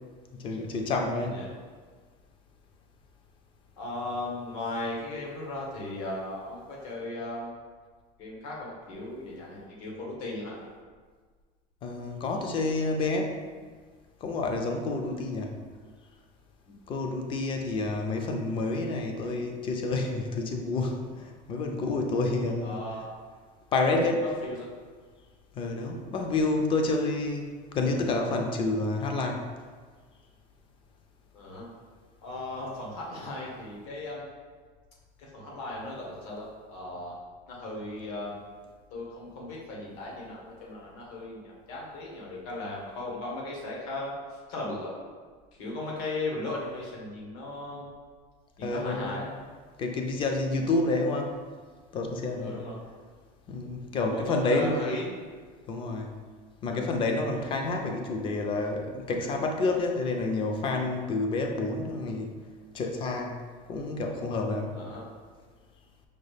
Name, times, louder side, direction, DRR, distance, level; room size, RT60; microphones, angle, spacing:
voice 1, 0.3-1.4 11.8-13.4 14.2-15.5 16.9-22.9 23.7-24.2 25.5-29.5 48.6-49.3 49.8-51.3 51.9-52.6 53.5-54.7 55.7-56.1 56.6-62.3 62.7-63.4 63.7-64.8, left 3 dB, 25° left, 3 dB, 0.4 m, -29 dB
voice 2, 3.8-7.5 8.2-10.6 15.0-15.1 16.7-16.8 22.6-23.1 23.9-24.7 31.3-31.7 32.2-34.2 35.2-37.2 37.5-38.4 38.9-44.9 45.6-47.9 48.6-49.3 52.4-52.8 53.9-55.1 56.7-56.9 64.7-65.0, left 2 dB, 75° left, -3 dB, 1.1 m, -37 dB
5.0 x 2.4 x 3.2 m, 1.5 s
cardioid pair, 165°, 19 cm